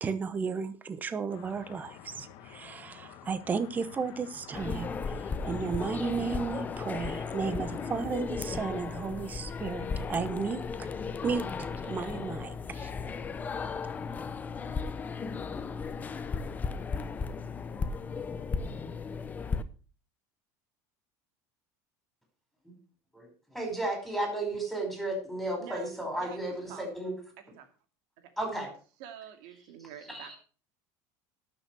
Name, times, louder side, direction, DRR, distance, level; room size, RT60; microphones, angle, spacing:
voice 1, 0.0-10.9 11.2-12.9, right 5 dB, 20° right, 0.9 m, -34 dB
sound 1, 1.3-8.0, left 10 dB, 60° left, 1.2 m, -50 dB
sound 2, 4.5-19.6, left 5 dB, 20° left, 0.7 m, -35 dB
voice 2, 23.1-27.1 28.4-28.7 29.8-30.4, right 1 dB, ahead, 5.0 m, -34 dB
voice 3, 25.6-25.9 26.2-26.8 27.6-27.7 28.2-28.3 29.0-30.3, right 9 dB, 70° right, 2.4 m, -47 dB
12.0 x 6.7 x 6.1 m
cardioid pair, 145°, 8 cm